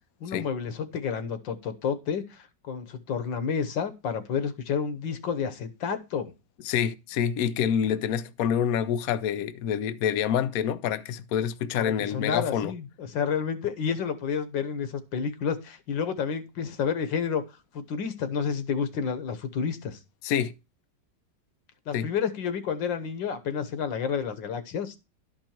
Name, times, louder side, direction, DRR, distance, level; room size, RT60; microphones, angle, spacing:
voice 1, 0.2-6.3 11.7-17.4 17.7-20.0 21.9-25.0, left 6 dB, 85° left, 1.8 m, -30 dB
voice 2, 6.6-12.7 20.2-20.5 21.9-22.1, left 9 dB, 65° left, 0.9 m, -27 dB
12.0 x 5.3 x 4.4 m
omnidirectional pair, 2.0 m